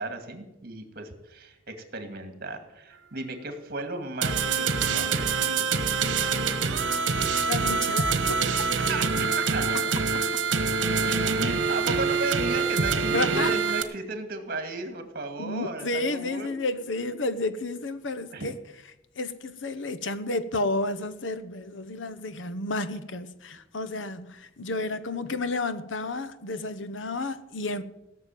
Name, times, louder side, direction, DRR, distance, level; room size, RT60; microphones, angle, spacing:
voice 1, 0.0-6.3 8.8-9.9 11.0-16.6 18.3-18.5, right 3 dB, 50° right, 2.3 m, -35 dB
sound 1, 4.2-13.8, right 5 dB, 70° right, 1.5 m, -25 dB
voice 2, 7.5-8.4 9.2-9.3 9.7-9.8 13.1-13.5 15.4-18.6 19.2-27.8, left 2 dB, 75° left, 1.0 m, -31 dB
17.0 x 6.7 x 9.1 m
head